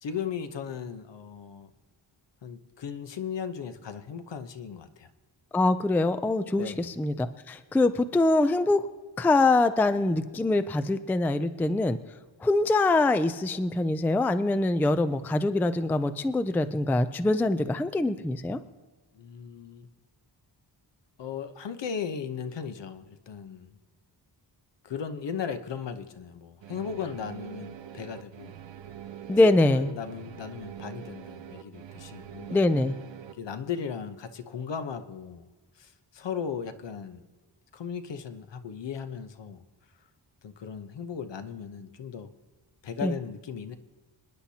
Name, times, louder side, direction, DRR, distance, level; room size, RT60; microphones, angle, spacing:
voice 1, 0.0-1.7 2.4-5.1 6.6-6.9 19.1-19.9 21.2-23.8 24.8-28.5 29.6-32.6 33.4-35.4 35.8-37.2 37.7-39.6 40.4-42.3 42.8-43.8, left 7 dB, 70° left, 9 dB, 0.9 m, -37 dB
voice 2, 5.5-8.9 9.2-12.0 12.4-18.6 29.3-29.9 32.5-32.9 43.0-43.1, left 2 dB, 5° left, 11 dB, 0.3 m, -24 dB
sound 1, 26.6-33.3, right 10 dB, 75° right, 0.9 m, -44 dB
27.5 x 10.0 x 2.8 m, 1.3 s
wide cardioid pair, 175°, 45 cm